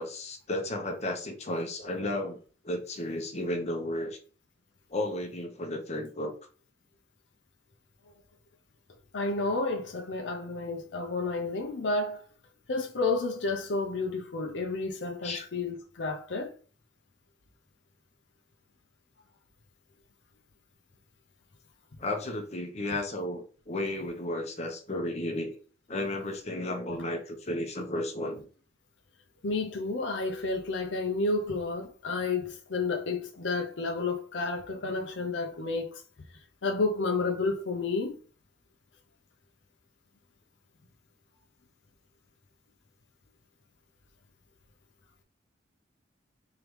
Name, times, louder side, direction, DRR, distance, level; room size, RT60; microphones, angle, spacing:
voice 1, 0.0-2.4 2.6-4.2 4.9-6.4 15.2-15.5 22.0-25.6 25.9-28.5, left 1 dB, 35° left, 0.8 m, -33 dB
voice 2, 9.1-12.2 12.7-16.5 29.4-36.0 36.6-38.2, left 3 dB, 75° left, 0.7 m, -31 dB
3.7 x 3.3 x 3.1 m
head